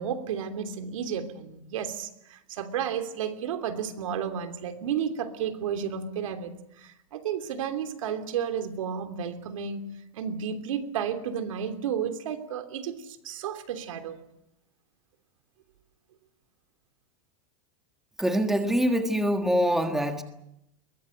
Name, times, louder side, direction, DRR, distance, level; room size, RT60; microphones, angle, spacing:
voice 1, 0.0-9.8 10.1-14.2, right 8 dB, 85° right, 7 dB, 3.1 m, -32 dB
voice 2, 18.2-20.2, equal, ahead, 6 dB, 1.6 m, -24 dB
22.5 x 20.5 x 8.0 m, 0.80 s
supercardioid pair, 165°, 16 cm